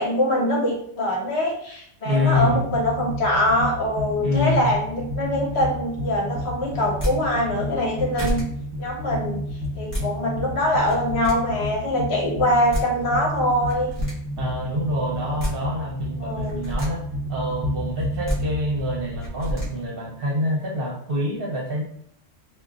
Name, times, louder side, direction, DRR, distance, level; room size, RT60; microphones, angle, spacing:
voice 1, 0.0-8.4 8.8-9.5 9.8-13.9 16.2-16.6, left 1 dB, 65° left, -2 dB, 1.2 m, -23 dB
voice 2, 2.0-2.6 4.2-4.7 14.4-17.0 17.3-21.8, left 1 dB, 55° right, -2 dB, 1.0 m, -26 dB
sound 1, 2.2-19.8, equal, 25° right, 1.2 m, -31 dB
pen cap, 6.8-7.1 7.8-7.9 8.2-8.4 9.6-10.0 10.8-11.3 12.4-12.5 12.7-12.8 13.7-14.1 15.1-15.5 16.4-16.9 18.0-18.4 19.2-19.7, equal, 30° left, 1.5 m, -28 dB
5.0 x 2.5 x 2.4 m, 0.67 s
omnidirectional pair, 1.2 m